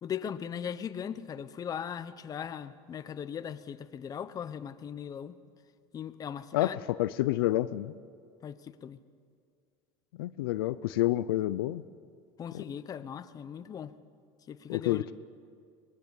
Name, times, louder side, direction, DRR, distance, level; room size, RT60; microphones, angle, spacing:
voice 1, 0.0-5.4 5.9-6.8 8.4-9.0 12.4-13.9 14.5-15.1, left 8 dB, 30° left, 1.1 m, -39 dB
voice 2, 6.5-7.9 10.2-11.8 12.5-12.6 14.7-15.1, left 15 dB, 85° left, 0.6 m, -29 dB
24.0 x 20.0 x 8.5 m
supercardioid pair, 115°, 12 cm